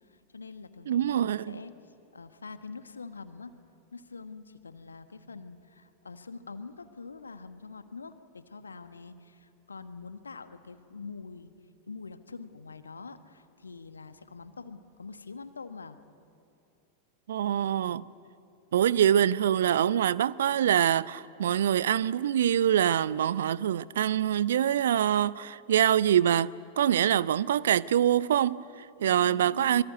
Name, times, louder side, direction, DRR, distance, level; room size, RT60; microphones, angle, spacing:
voice 1, 0.1-1.7 2.1-3.5 3.9-11.5 11.9-16.0 29.0-29.8, left 4 dB, 75° left, 1.3 m, -45 dB
voice 2, 0.9-1.6 17.3-18.0 18.7-26.5 26.8-29.8, right 10 dB, 60° right, 0.5 m, -25 dB
25.5 x 23.5 x 9.4 m
figure-of-eight pair, 90°, 0 cm